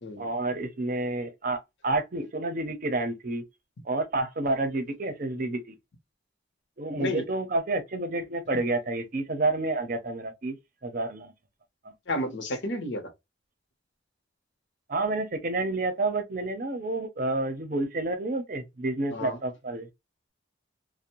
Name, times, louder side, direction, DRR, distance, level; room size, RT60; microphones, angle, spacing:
voice 1, 0.2-3.4 3.8-5.8 6.8-10.6 10.8-11.3 11.8-11.9 14.9-19.9, right 2 dB, 45° right, 0.6 m, -29 dB
voice 2, 12.1-13.0 19.1-19.4, left 1 dB, 70° left, 0.8 m, -31 dB
2.6 x 2.1 x 2.9 m
head